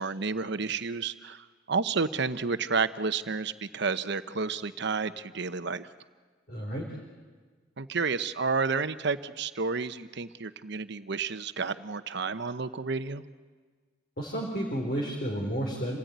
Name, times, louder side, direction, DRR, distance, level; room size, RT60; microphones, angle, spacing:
voice 1, 0.0-5.9 7.8-13.2, right 4 dB, 60° right, 12 dB, 1.0 m, -31 dB
voice 2, 6.5-6.9 14.2-16.0, right 1 dB, 50° left, -1 dB, 3.7 m, -31 dB
28.0 x 18.0 x 9.4 m, 1.5 s
head